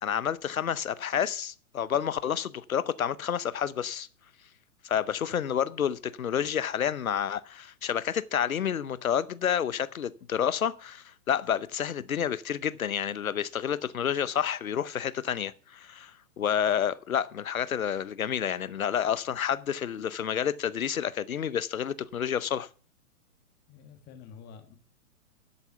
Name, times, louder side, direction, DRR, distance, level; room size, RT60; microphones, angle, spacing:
voice 1, 0.0-4.1 4.8-22.7, left 8 dB, 70° left, 0.9 m, -29 dB
voice 2, 23.7-24.8, left 6 dB, 20° left, 1.6 m, -49 dB
13.0 x 7.1 x 5.8 m
figure-of-eight pair, 115°, 44 cm